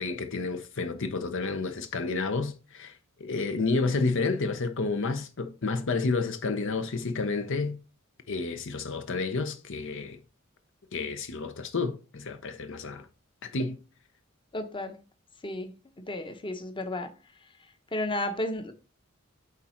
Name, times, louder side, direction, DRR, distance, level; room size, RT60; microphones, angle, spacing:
voice 1, 0.0-7.8 8.3-10.2 10.9-13.1 13.4-13.8, left 3 dB, 65° left, 0.7 m, -30 dB
voice 2, 14.5-15.0 15.4-15.7 16.0-17.1 17.9-18.7, left 1 dB, 25° left, 0.9 m, -32 dB
8.4 x 3.7 x 4.3 m
head